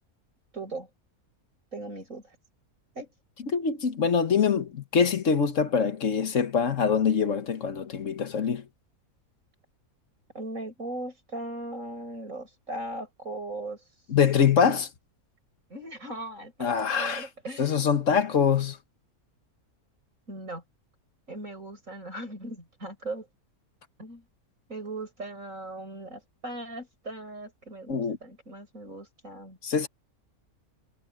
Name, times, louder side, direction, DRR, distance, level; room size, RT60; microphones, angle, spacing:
voice 1, 0.5-0.9 1.7-2.4 2.9-3.1 10.3-13.8 15.7-17.8 20.3-20.6 21.3-23.3 24.0-24.2 24.7-29.6, right 2 dB, 60° right, 7.6 m, -38 dB
voice 2, 3.5-8.6 14.1-14.9 16.6-17.2 17.6-18.8 27.9-28.2 29.6-29.9, left 6 dB, 60° left, 1.6 m, -24 dB
omnidirectional pair, 1.6 m